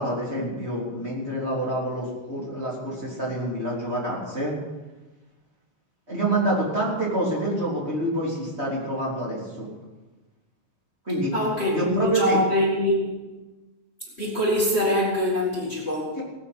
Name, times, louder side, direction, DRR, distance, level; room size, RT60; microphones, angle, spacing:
voice 1, 0.0-4.5 6.1-9.7 11.0-11.3 11.7-12.4 16.2-16.3, right 1 dB, 15° right, -5 dB, 3.1 m, -27 dB
voice 2, 11.3-13.2 14.2-16.2, left 1 dB, 65° left, -4 dB, 0.6 m, -24 dB
18.0 x 8.8 x 6.1 m, 1.1 s
omnidirectional pair, 5.2 m